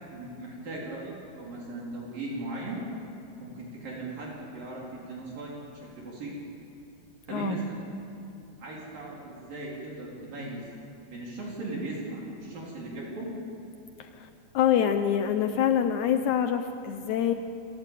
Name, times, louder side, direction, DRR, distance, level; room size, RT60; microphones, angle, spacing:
voice 1, 0.1-2.8 3.4-6.3 7.3-7.8 8.6-10.6 11.1-13.3, right 2 dB, 60° right, -4 dB, 5.7 m, -38 dB
voice 2, 14.0-14.3 14.5-17.3, left 9 dB, 80° left, 8 dB, 1.7 m, -25 dB
28.5 x 17.0 x 9.1 m, 2.7 s
omnidirectional pair, 4.6 m